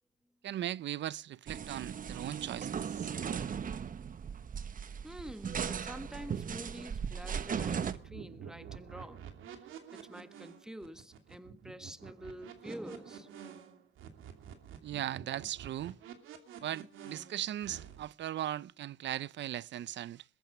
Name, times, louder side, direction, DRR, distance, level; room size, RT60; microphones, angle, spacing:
voice 1, 0.4-3.1 14.8-16.0 16.6-20.2, right 12 dB, 65° right, 0.7 m, -38 dB
sound 1, 1.5-7.9, right 7 dB, 45° right, 1.0 m, -37 dB
voice 2, 5.0-9.6 9.9-13.6, equal, 5° right, 1.5 m, -47 dB
sound 2, 7.8-18.1, right 8 dB, 85° right, 2.9 m, -49 dB
21.5 x 9.1 x 6.7 m
cardioid pair, 90°, 20 cm